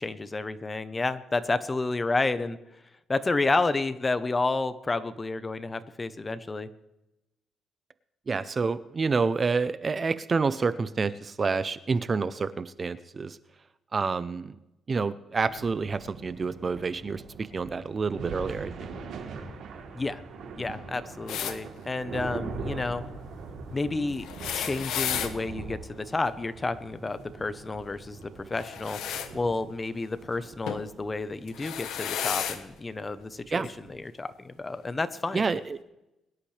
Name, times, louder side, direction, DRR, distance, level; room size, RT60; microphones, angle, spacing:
voice 1, 0.0-2.6 3.1-6.7 19.9-20.2 20.6-23.0 23.7-24.3 24.5-29.0 29.3-35.4, left 3 dB, 25° left, 13 dB, 0.9 m, -30 dB
voice 2, 8.3-13.4 13.9-14.6 14.9-18.9 33.5-33.7 35.3-35.8, right 4 dB, 35° right, 15 dB, 0.7 m, -28 dB
sound 1, 15.5-34.0, right 4 dB, 75° right, 3.3 m, -42 dB
sound 2, 21.3-21.6 24.2-25.3 28.5-29.3 30.7-30.9 31.5-32.6 33.6-33.7 34.9-35.0, left 9 dB, 80° left, 1.2 m, -32 dB
23.0 x 11.5 x 3.4 m, 0.91 s
cardioid pair, 90°, 0 cm